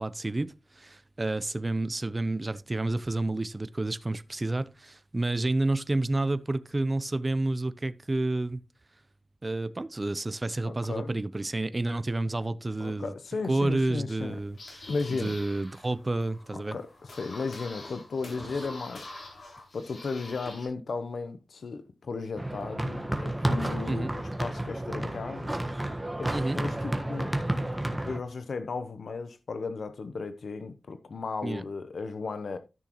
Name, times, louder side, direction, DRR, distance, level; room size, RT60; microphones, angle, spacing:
voice 1, 0.0-8.6 9.4-13.1 13.5-16.8 23.8-24.1 26.3-26.6 31.4-31.6, right 2 dB, 30° right, 0.6 m, -30 dB
voice 2, 10.7-11.2 12.8-14.4 14.9-15.3 16.5-19.3 19.7-25.6 26.2-27.7 28.0-32.6, left 4 dB, 90° left, 0.8 m, -35 dB
sound 1, 14.2-20.7, left 2 dB, 70° left, 3.9 m, -46 dB
sound 2, 22.4-28.2, right 1 dB, 15° right, 1.3 m, -31 dB
13.5 x 6.2 x 3.0 m
wide cardioid pair, 105°, 0 cm